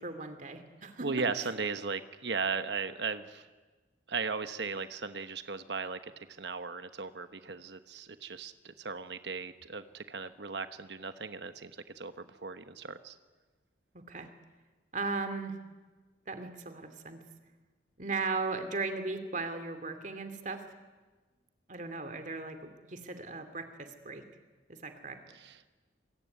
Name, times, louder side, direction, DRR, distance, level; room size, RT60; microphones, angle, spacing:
voice 1, 0.0-1.1 1.4-1.5 13.9-14.3 14.9-15.6 16.3-17.2 18.0-20.6 21.7-24.2 24.7-25.2, right 3 dB, 45° right, 9 dB, 2.6 m, -37 dB
voice 2, 1.0-3.5 4.1-13.2 25.3-25.7, right 4 dB, 70° right, 10 dB, 1.2 m, -37 dB
26.5 x 23.0 x 9.6 m, 1.3 s
head